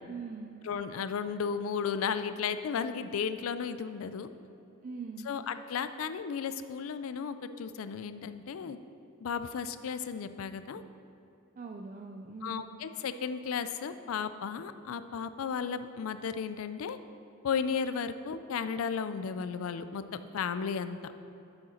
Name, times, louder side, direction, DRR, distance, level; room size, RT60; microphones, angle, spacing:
voice 1, 0.1-0.6 4.8-5.3 11.6-12.7, right 4 dB, 40° right, 2 dB, 0.4 m, -42 dB
voice 2, 0.6-4.3 5.3-8.8 9.2-10.8 12.4-17.0 17.4-21.0, left 6 dB, 80° left, 11 dB, 0.4 m, -34 dB
8.6 x 6.4 x 4.4 m, 2.8 s
head